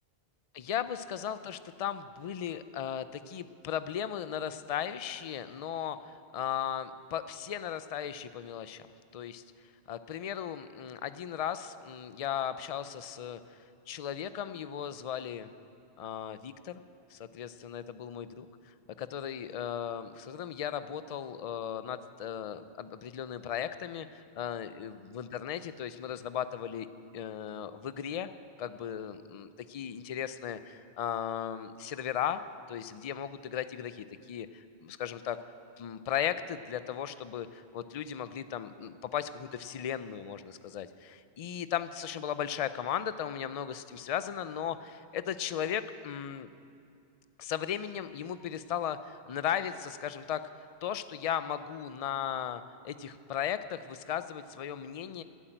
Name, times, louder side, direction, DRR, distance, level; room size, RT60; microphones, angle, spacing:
voice 1, 0.6-8.8 9.1-9.4 9.9-13.6 13.9-15.5 16.0-16.8 17.1-18.5 19.0-26.9 27.1-28.3 28.6-32.4 32.7-35.4 35.8-46.5 47.4-50.4 50.8-55.2, left 9 dB, 50° left, 13 dB, 0.4 m, -36 dB
11.5 x 8.6 x 9.0 m, 2.5 s
omnidirectional pair, 1.1 m